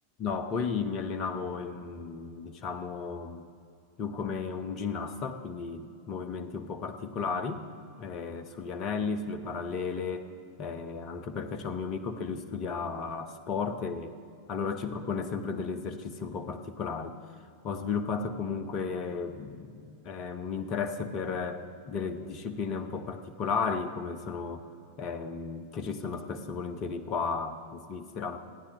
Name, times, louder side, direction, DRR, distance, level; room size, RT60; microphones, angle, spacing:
voice 1, 0.2-3.5 4.0-7.6 8.0-10.3 10.6-14.1 14.5-17.2 17.6-24.6 25.0-28.4, left 5 dB, 35° left, 10 dB, 1.0 m, -34 dB
29.5 x 10.0 x 3.1 m, 2.4 s
figure-of-eight pair, 90°, 0 cm